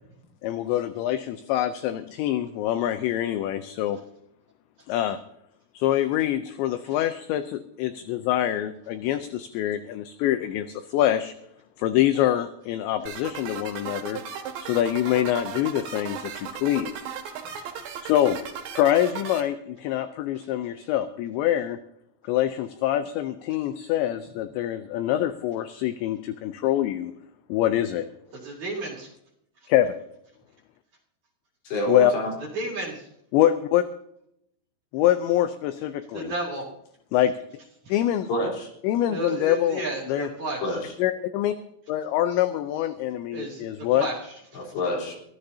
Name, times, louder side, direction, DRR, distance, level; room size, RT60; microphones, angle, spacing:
voice 1, 0.4-4.0 4.9-5.2 5.7-11.3 11.8-14.2 14.6-17.0 18.0-18.4 18.7-21.8 22.2-27.1 27.5-28.1 29.7-30.0 31.9-32.1 33.3-33.8 34.9-36.3 37.1-37.3 37.9-38.3 38.8-40.3 41.0-41.5 41.9-44.1, left 12 dB, 80° left, 10 dB, 2.7 m, -25 dB
sound 1, 13.1-19.4, right 7 dB, 65° right, 3.9 m, -36 dB
voice 2, 28.4-29.1 32.5-33.0 36.1-36.6 39.1-40.6 43.3-43.7 43.9-44.1, right 2 dB, 40° right, -2 dB, 3.8 m, -32 dB
voice 3, 31.7-32.3 38.3-38.7 40.6-40.9 44.5-45.1, left 1 dB, 60° left, 0 dB, 6.0 m, -28 dB
23.5 x 15.5 x 2.8 m, 0.76 s
omnidirectional pair, 5.8 m